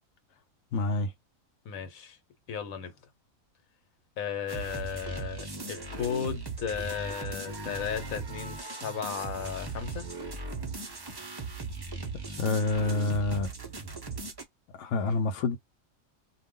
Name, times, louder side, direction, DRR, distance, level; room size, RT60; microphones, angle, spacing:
voice 1, 0.7-1.1 12.4-13.5 14.7-15.6, left 3 dB, 65° left, 0.9 m, -27 dB
voice 2, 1.6-2.2 2.5-2.9 4.2-10.1, left 7 dB, 85° left, 1.2 m, -35 dB
sound 1, 4.5-14.4, right 3 dB, 35° right, 0.4 m, -38 dB
2.4 x 2.2 x 3.6 m
omnidirectional pair, 1.4 m